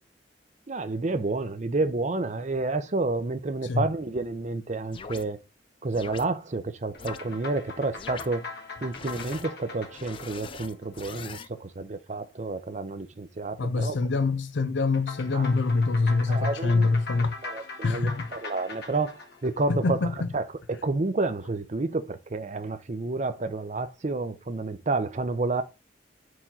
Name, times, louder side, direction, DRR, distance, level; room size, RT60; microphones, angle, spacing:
voice 1, 0.7-5.4 5.8-8.5 8.8-14.0 15.3-15.5 16.3-16.9 17.4-20.0 20.3-25.6, right 3 dB, 40° right, 0.6 m, -30 dB
sound 1, 4.9-5.2 5.9-6.2 7.0-7.2 7.9-8.3 8.9-9.5 9.9-11.5, left 5 dB, 30° left, 0.3 m, -41 dB
sound 2, 6.9-11.6 14.9-20.4, left 4 dB, 60° left, 1.4 m, -41 dB
voice 2, 13.6-17.4 17.8-18.3 19.7-20.3, left 3 dB, 80° left, 0.5 m, -25 dB
4.8 x 3.7 x 5.5 m
head